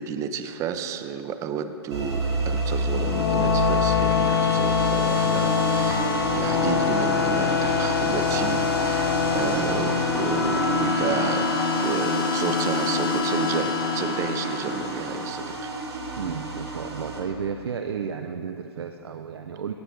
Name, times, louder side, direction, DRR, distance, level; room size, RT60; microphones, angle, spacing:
voice 1, 0.0-11.5 11.8-15.8, right 7 dB, 20° right, 9 dB, 0.5 m, -31 dB
sound 1, 1.9-17.2, right 2 dB, 85° right, 2.4 m, -29 dB
sound 2, 2.9-15.2, left 7 dB, 55° left, 0.8 m, -25 dB
voice 2, 16.1-19.7, right 7 dB, 70° right, 6 dB, 0.5 m, -33 dB
17.5 x 8.0 x 3.4 m, 2.7 s
figure-of-eight pair, 120°, 14 cm